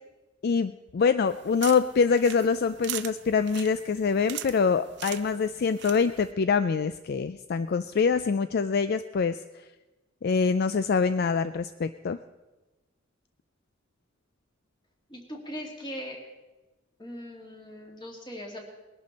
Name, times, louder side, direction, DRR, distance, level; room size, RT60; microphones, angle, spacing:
voice 1, 0.4-9.4 10.2-12.2, left 5 dB, 50° left, 12 dB, 0.4 m, -25 dB
sound 1, 1.3-6.3, right 13 dB, 60° right, 0.6 m, -41 dB
voice 2, 15.1-16.2 17.0-18.6, equal, 25° left, 0 dB, 2.4 m, -39 dB
20.5 x 11.5 x 4.2 m, 1.1 s
head